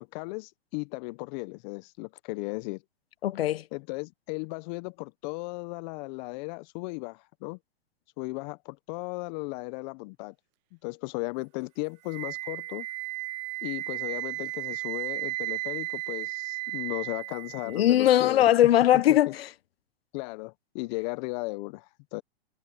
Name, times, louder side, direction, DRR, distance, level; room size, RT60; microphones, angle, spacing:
voice 1, 0.0-2.8 3.7-7.6 8.2-10.3 10.8-12.9 13.6-18.4 20.1-22.2, left 27 dB, 40° left, 1.4 m, -36 dB
voice 2, 3.2-3.6 17.7-19.5, left 12 dB, 65° left, 1.2 m, -20 dB
Wind instrument woodwind instrument, 12.1-18.1, right 23 dB, 40° right, 0.9 m, -35 dB
hypercardioid pair, 115°, 33 cm